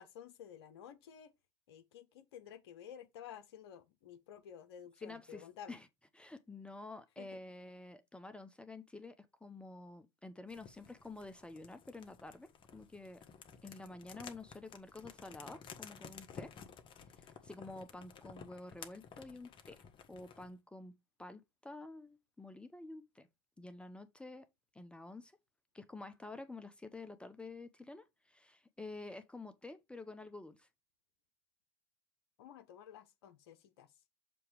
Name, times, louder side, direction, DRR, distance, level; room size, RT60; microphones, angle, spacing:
voice 1, 0.0-1.3 1.7-5.8 7.2-7.3 32.4-33.9, left 9 dB, 75° left, 0.7 m, -52 dB
voice 2, 5.0-5.9 6.1-13.2 13.6-16.5 17.2-19.8 20.1-20.9 21.2-23.3 23.6-24.5 24.7-25.3 25.7-30.7, left 2 dB, 10° left, 0.7 m, -49 dB
sound 1, 10.5-20.5, left 6 dB, 35° left, 1.2 m, -54 dB
6.9 x 2.9 x 4.9 m
hypercardioid pair, 90°, 14 cm